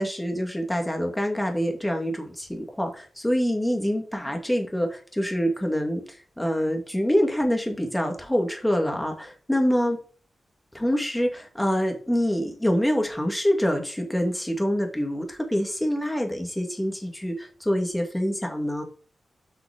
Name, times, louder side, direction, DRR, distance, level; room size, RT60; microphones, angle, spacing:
voice 1, 0.0-10.0 10.7-18.8, equal, 5° left, 3 dB, 2.4 m, -26 dB
8.6 x 5.9 x 3.7 m, 0.41 s
wide cardioid pair, 100°, 0 cm